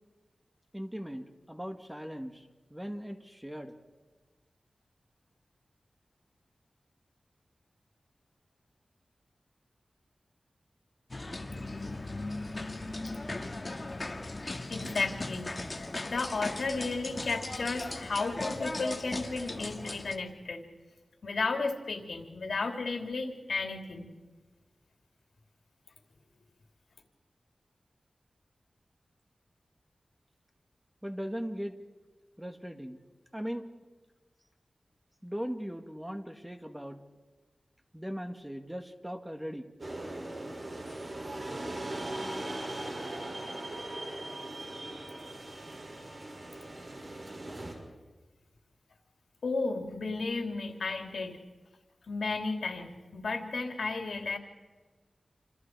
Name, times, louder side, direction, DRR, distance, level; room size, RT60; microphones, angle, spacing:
voice 1, 0.7-3.8 31.0-31.8 32.4-33.0 33.3-33.6 35.2-37.0 37.9-39.7, equal, 5° right, 5 dB, 1.8 m, -39 dB
sound 1, 11.1-20.2, left 2 dB, 30° left, 1.9 m, -38 dB
voice 2, 14.7-20.6 21.2-24.1 49.4-51.4 52.1-54.4, left 3 dB, 85° left, 3 dB, 3.1 m, -33 dB
sound 2, 39.8-47.7, right 1 dB, 45° right, 6.3 m, -39 dB
28.0 x 27.0 x 4.7 m, 1.3 s
wide cardioid pair, 110°, 0 cm